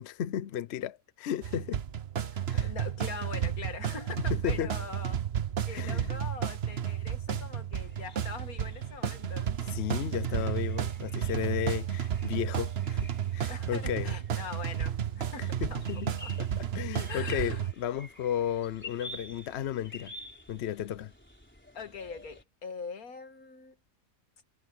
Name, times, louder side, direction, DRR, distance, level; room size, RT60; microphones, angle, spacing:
voice 1, 0.0-1.8 2.5-2.7 4.3-4.7 5.7-6.1 7.3-7.5 9.7-14.1 15.4-20.1 20.5-21.1, left 10 dB, 55° left, 0.8 m, -34 dB
sound 1, 1.4-17.7, right 9 dB, 50° right, 1.1 m, -32 dB
voice 2, 2.3-5.2 5.6-9.5 13.5-15.8 16.1-16.3 17.1-17.6 21.7-23.8, left 5 dB, 85° left, 2.2 m, -42 dB
sound 2, 7.8-22.4, left 2 dB, 5° left, 4.1 m, -50 dB
omnidirectional pair, 1.5 m